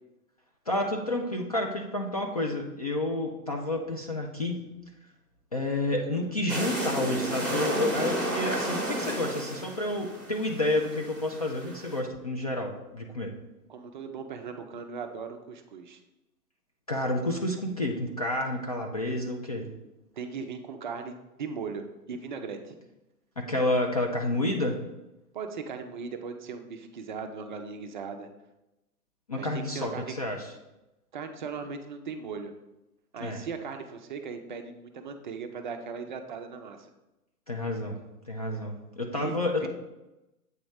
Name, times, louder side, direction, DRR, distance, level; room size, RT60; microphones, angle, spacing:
voice 1, 0.7-4.6 5.5-13.3 16.9-19.7 23.4-24.8 29.3-30.5 33.2-33.4 37.5-38.0 38.3-39.7, left 1 dB, 30° left, 0 dB, 0.3 m, -30 dB
sound 1, 6.5-12.0, right 1 dB, ahead, 1.0 m, -32 dB
voice 2, 13.7-16.0 20.2-22.8 25.3-28.3 29.3-30.1 31.1-32.5 33.1-36.9 39.1-39.7, right 5 dB, 35° right, 6 dB, 0.5 m, -38 dB
7.9 x 2.9 x 4.9 m, 0.96 s
figure-of-eight pair, 115°, 46 cm